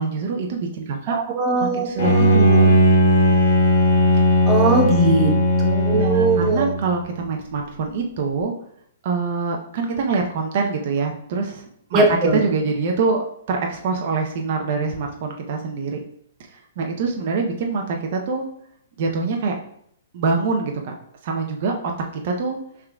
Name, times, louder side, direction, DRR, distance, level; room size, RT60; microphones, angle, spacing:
voice 1, 0.0-1.2 1.6-2.8 5.7-8.5 9.0-11.6 11.9-16.0 16.5-18.5 19.0-19.5 20.1-20.9 21.2-21.9 22.2-22.6, right 4 dB, 50° right, 2 dB, 0.7 m, -25 dB
voice 2, 1.1-2.5 4.5-5.3 5.6-6.7 11.9-12.4, right 2 dB, 25° right, -1 dB, 1.2 m, -20 dB
Bowed string instrument, 2.0-6.9, equal, 75° left, 1.8 m, -17 dB
5.6 x 3.7 x 2.3 m, 0.68 s
hypercardioid pair, 150°, 0 cm